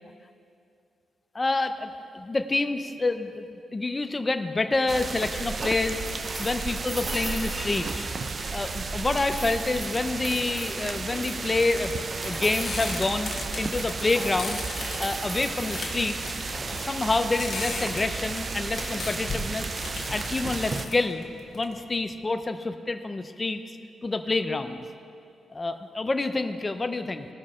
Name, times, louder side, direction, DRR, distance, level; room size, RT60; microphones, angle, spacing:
voice 1, 1.3-3.4 3.7-6.0 6.4-8.1 8.5-11.9 12.2-14.6 15.0-16.3 16.7-19.8 20.1-21.2 21.5-23.8 24.0-24.9 25.5-27.3, left 3 dB, 25° left, 8 dB, 0.6 m, -28 dB
sound 1, 4.9-20.9, right 4 dB, 45° right, 0.5 m, -33 dB
sound 2, 6.0-8.9 9.2-11.5 12.1-12.9 13.4-15.9 16.4-16.9 18.9-19.0, right 1 dB, 30° right, 1.9 m, -39 dB
sound 3, 11.8-22.1, left 3 dB, 50° left, 1.5 m, -38 dB
18.0 x 6.1 x 4.3 m, 2.5 s
cardioid pair, 70°, 0 cm